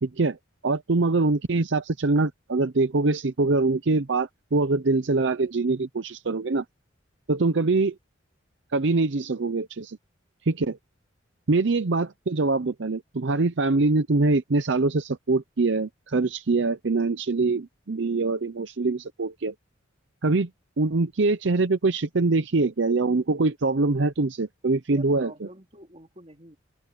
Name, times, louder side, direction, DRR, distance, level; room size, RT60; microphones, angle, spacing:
voice 1, 0.0-0.4 0.6-6.6 7.3-7.9 8.7-10.0 10.5-10.8 11.5-19.5 20.2-20.5 20.8-25.3, right 3 dB, 65° right, 0.7 m, -24 dB
voice 2, 24.9-26.6, right 1 dB, 30° right, 4.0 m, -47 dB
open air
head